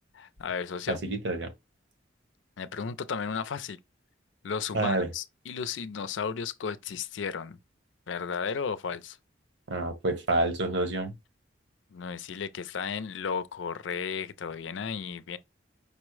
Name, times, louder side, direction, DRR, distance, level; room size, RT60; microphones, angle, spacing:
voice 1, 0.2-1.0 2.6-3.8 4.4-7.6 8.1-9.2 11.9-15.4, left 6 dB, 85° left, 0.5 m, -34 dB
voice 2, 0.9-1.5 4.7-5.1 9.7-11.1, right 2 dB, 70° right, 1.1 m, -28 dB
5.3 x 2.1 x 4.6 m
head